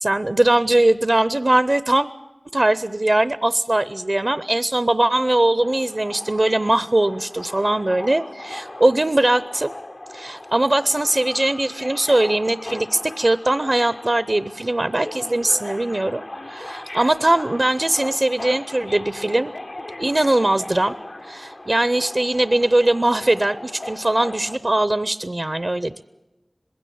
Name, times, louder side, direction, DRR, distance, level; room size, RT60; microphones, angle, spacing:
voice 1, 0.0-2.1 2.5-9.7 10.1-19.5 20.0-20.9 21.2-26.0, right 1 dB, 50° right, 14 dB, 0.6 m, -20 dB
Subway metro underground, 5.6-24.6, left 1 dB, 55° left, 0.8 m, -38 dB
21.0 x 16.5 x 8.5 m, 1.1 s
wide cardioid pair, 50°, 0 cm